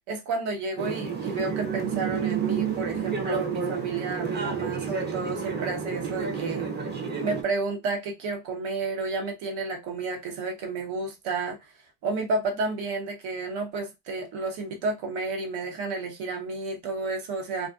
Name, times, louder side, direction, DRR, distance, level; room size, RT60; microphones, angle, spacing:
voice 1, 0.1-6.7 7.2-11.6 12.0-17.7, right 3 dB, 85° right, 1.0 m, -31 dB
sound 1, 0.8-7.4, right 6 dB, 25° right, 0.5 m, -30 dB
2.6 x 2.4 x 2.3 m
cardioid pair, 125°, 46 cm